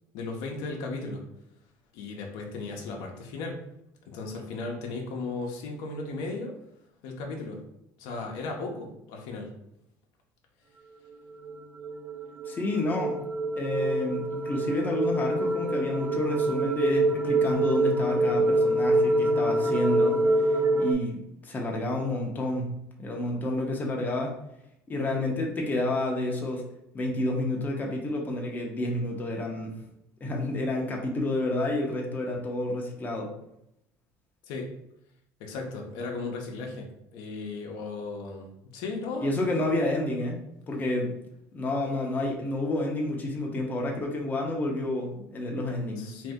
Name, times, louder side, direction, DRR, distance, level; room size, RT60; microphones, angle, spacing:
voice 1, 0.1-1.2 1.9-3.6 4.0-6.5 7.0-7.6 8.0-9.5 34.5-34.7 35.4-39.4 46.0-46.3, left 3 dB, 75° left, 1 dB, 0.7 m, -36 dB
sound 1, 11.3-20.9, right 2 dB, 25° right, 0.4 m, -25 dB
voice 2, 12.5-13.2 13.6-24.3 24.9-26.7 26.9-29.8 30.2-33.3 39.2-41.2 41.5-46.1, left 2 dB, 25° left, 0 dB, 0.7 m, -30 dB
2.6 x 2.6 x 3.5 m, 0.80 s
supercardioid pair, 110°, 8 cm